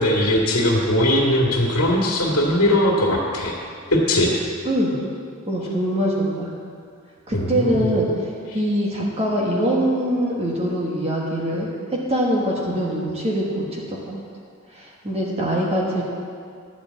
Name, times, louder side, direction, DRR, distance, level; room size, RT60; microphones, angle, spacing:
voice 1, 0.0-3.5 3.9-4.3 7.3-7.9 8.5-8.6, left 1 dB, 90° left, -3 dB, 2.0 m, -20 dB
voice 2, 4.6-5.0 5.5-6.5 7.3-8.3 8.5-11.7 12.1-14.2 14.7-16.0, equal, 30° right, -3 dB, 1.4 m, -23 dB
11.0 x 5.1 x 8.2 m, 2.2 s
head